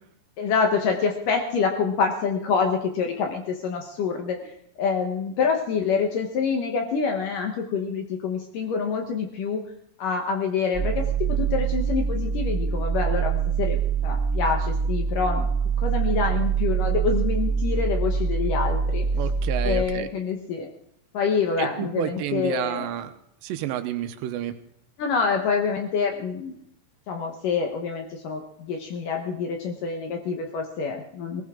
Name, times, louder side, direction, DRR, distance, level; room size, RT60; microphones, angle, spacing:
voice 1, 0.4-4.4 4.8-9.6 10.0-11.0 11.4-15.5 15.8-19.1 19.6-20.7 21.1-22.9 25.0-26.6 27.1-31.4, left 5 dB, 65° left, 3 dB, 2.3 m, -26 dB
sound 1, 10.7-19.8, right 6 dB, ahead, 6.6 m, -24 dB
voice 2, 19.1-20.1 21.6-23.1 23.4-24.5, right 12 dB, 80° right, 9 dB, 3.1 m, -30 dB
19.0 x 18.0 x 3.7 m, 0.74 s
omnidirectional pair, 5.0 m